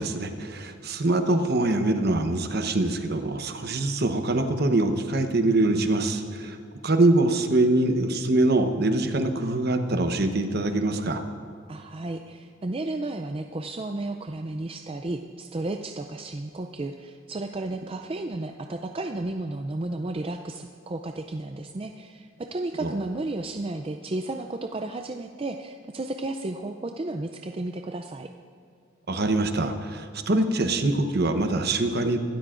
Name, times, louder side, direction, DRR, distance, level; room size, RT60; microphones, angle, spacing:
voice 1, 0.0-6.6 6.8-11.2 22.8-22.9 29.1-32.2, right 2 dB, 50° right, 6 dB, 0.9 m, -24 dB
voice 2, 11.7-28.3, right 2 dB, 30° right, 5 dB, 0.4 m, -33 dB
23.5 x 13.0 x 2.5 m, 2.4 s
head